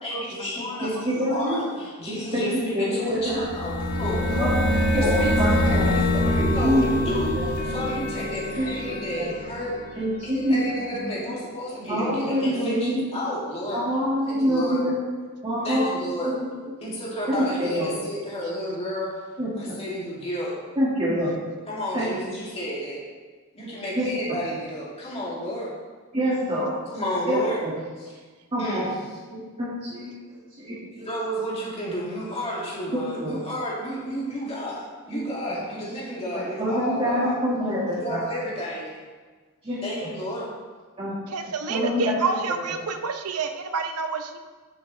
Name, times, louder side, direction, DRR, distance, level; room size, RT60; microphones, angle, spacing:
voice 1, 0.0-13.8 14.3-14.8 15.6-16.3 16.8-19.1 19.6-20.5 21.7-23.0 23.5-25.7 26.9-27.6 28.0-28.2 28.6-28.9 31.0-37.3 37.8-38.9 39.8-40.5, equal, 30° left, -6 dB, 2.7 m, -31 dB
voice 2, 0.6-1.6 2.1-3.4 4.0-5.9 6.3-6.9 7.3-7.5 8.6-9.3 10.0-10.6 10.9-11.0 11.9-13.0 13.7-14.9 15.4-16.3 17.3-17.9 19.4-19.8 20.8-21.3 21.9-22.0 24.0-24.1 26.1-26.8 27.3-27.7 28.5-28.8 29.3-30.2 30.6-31.1 33.2-33.4 35.1-35.2 36.3-38.2 39.6-39.8 41.0-41.1 41.4-42.3, equal, 25° right, -10 dB, 1.9 m, -26 dB
sound 1, 3.3-10.0, left 1 dB, 75° left, 2.0 m, -25 dB
voice 3, 41.3-44.4, right 4 dB, 85° right, 7 dB, 0.7 m, -28 dB
9.6 x 8.4 x 3.3 m, 1.4 s
head